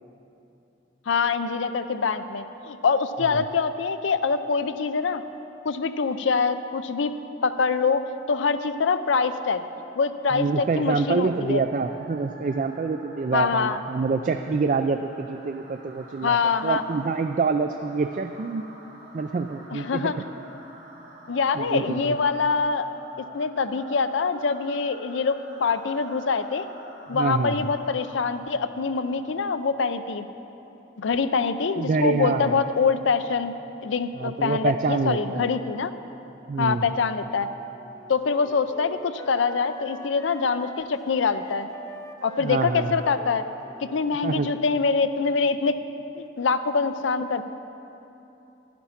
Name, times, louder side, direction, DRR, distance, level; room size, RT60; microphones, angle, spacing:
voice 1, 1.1-5.2 5.6-7.1 7.4-8.0 8.3-9.6 10.0-11.6 13.3-13.8 16.2-16.8 19.7-20.1 21.3-22.9 23.3-26.7 27.1-30.3 31.0-33.5 33.8-35.9 36.6-37.5 38.1-41.7 42.2-43.4 43.8-45.8 46.2-47.4, left 5 dB, 80° left, 11 dB, 0.5 m, -24 dB
sound 1, 9.8-28.7, right 1 dB, 60° right, 2.1 m, -48 dB
voice 2, 10.3-16.4 16.6-18.6 19.1-20.1 21.5-22.2 27.1-27.7 31.8-32.6 34.2-35.5 36.5-36.9 42.4-43.0 44.2-44.5, right 4 dB, 40° right, 7 dB, 0.3 m, -26 dB
Wind instrument woodwind instrument, 37.2-45.2, left 1 dB, 20° left, 0.5 m, -46 dB
11.0 x 10.5 x 5.8 m, 2.9 s
head